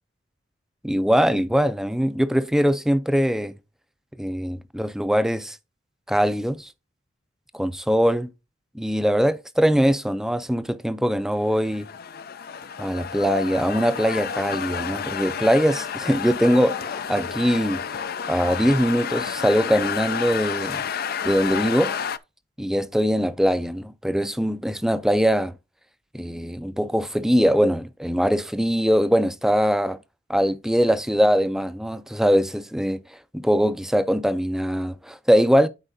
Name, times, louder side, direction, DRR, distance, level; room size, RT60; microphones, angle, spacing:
voice 1, 0.8-3.5 4.2-5.6 6.1-6.7 7.5-8.3 8.7-11.9 12.8-17.8 18.3-20.8 21.2-21.9 22.6-25.5 26.1-30.0 30.3-33.0 33.3-35.7, equal, 5° right, 0.5 m, -22 dB
sound 1, 11.4-22.2, left 7 dB, 55° left, 0.5 m, -30 dB
12.5 x 4.7 x 2.7 m
head